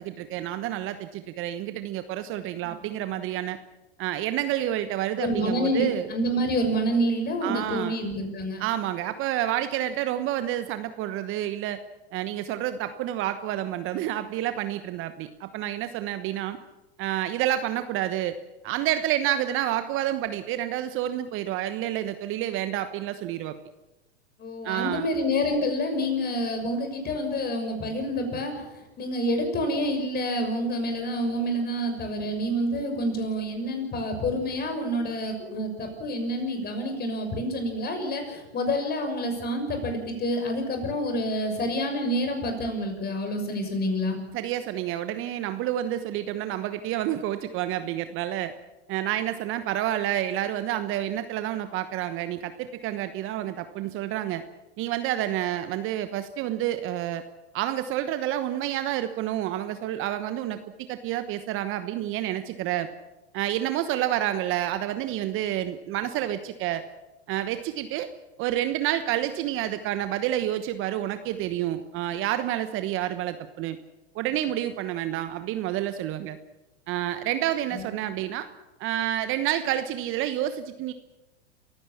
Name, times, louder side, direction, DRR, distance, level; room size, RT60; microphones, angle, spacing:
voice 1, 0.0-3.6 4.0-6.1 7.4-8.0 8.6-11.8 12.1-16.6 17.0-18.3 18.6-23.5 24.6-25.1 44.3-48.5 48.9-54.4 54.8-57.2 57.5-62.9 63.3-66.8 67.3-68.1 68.4-73.8 74.1-76.4 76.9-78.5 78.8-80.9, right 12 dB, 40° right, 10 dB, 1.2 m, -29 dB
voice 2, 5.2-8.6 24.4-28.6 29.0-44.2 77.7-77.9, equal, 30° left, 6 dB, 6.3 m, -28 dB
28.0 x 16.0 x 7.2 m, 1.1 s
hypercardioid pair, 100°, 33 cm